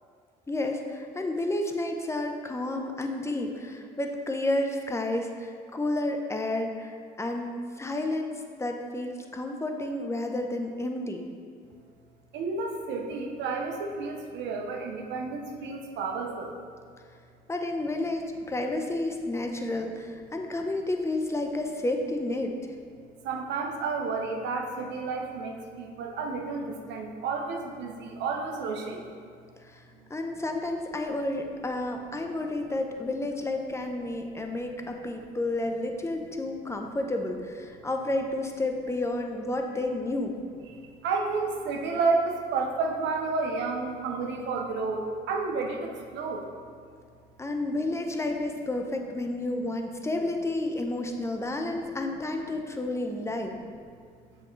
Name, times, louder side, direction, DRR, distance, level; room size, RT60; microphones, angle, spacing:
voice 1, 0.5-11.3 17.5-22.5 29.6-29.8 30.1-40.4 47.4-53.6, left 2 dB, 15° left, 3 dB, 0.7 m, -31 dB
voice 2, 12.3-16.6 23.2-29.1 41.0-46.4, right 4 dB, 70° right, 2 dB, 0.8 m, -31 dB
7.0 x 5.2 x 3.2 m, 2.1 s
supercardioid pair, 75°, 19 cm